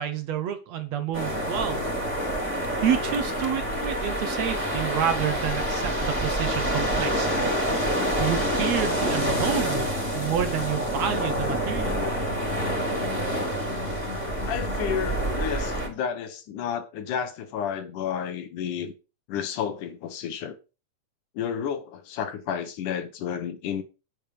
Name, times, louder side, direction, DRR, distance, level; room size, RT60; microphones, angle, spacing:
voice 1, 0.0-1.9 2.5-7.5 8.2-9.9 10.1-12.0, right 9 dB, 65° right, 2.2 m, -29 dB
sound 1, 1.1-15.9, equal, 5° right, 3.6 m, -27 dB
sound 2, 6.8-15.1, left 4 dB, 25° left, 1.9 m, -40 dB
voice 2, 14.5-18.9 19.3-20.6 21.3-23.8, left 8 dB, 75° left, 2.9 m, -31 dB
8.9 x 8.5 x 5.0 m
omnidirectional pair, 3.6 m